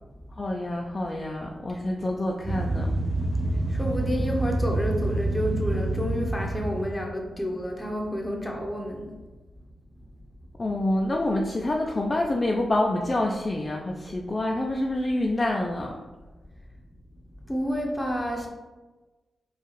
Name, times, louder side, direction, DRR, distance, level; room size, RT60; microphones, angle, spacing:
voice 1, 0.4-2.9 10.6-15.9, left 1 dB, 35° left, 0 dB, 0.4 m, -27 dB
sound 1, 2.4-7.1, right 1 dB, 30° right, 0.4 m, -27 dB
voice 2, 3.7-9.1 17.5-18.5, equal, 10° left, 0 dB, 0.8 m, -29 dB
4.6 x 2.4 x 3.0 m, 1.2 s
cardioid pair, 65°, 0 cm